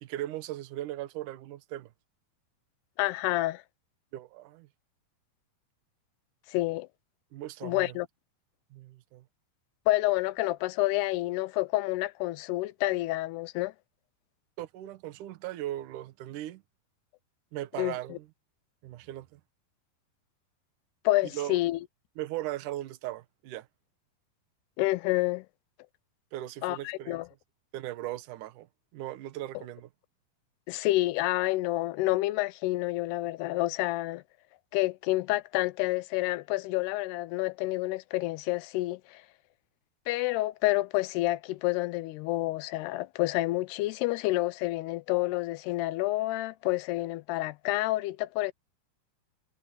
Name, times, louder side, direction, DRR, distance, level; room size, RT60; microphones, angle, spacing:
voice 1, 0.0-1.9 4.1-4.7 7.3-8.0 8.7-9.2 14.6-16.6 17.5-18.3 18.8-19.4 21.3-21.6 22.2-23.7 26.3-27.2 27.7-28.7 28.9-29.9, right 14 dB, 65° right, 2.3 m, -38 dB
voice 2, 3.0-3.6 6.5-6.9 7.6-8.1 9.9-13.7 17.8-18.2 21.1-21.8 24.8-25.5 26.6-27.3 30.7-34.2 34.7-39.2 40.1-48.5, left 18 dB, 85° left, 2.7 m, -29 dB
omnidirectional pair, 4.6 m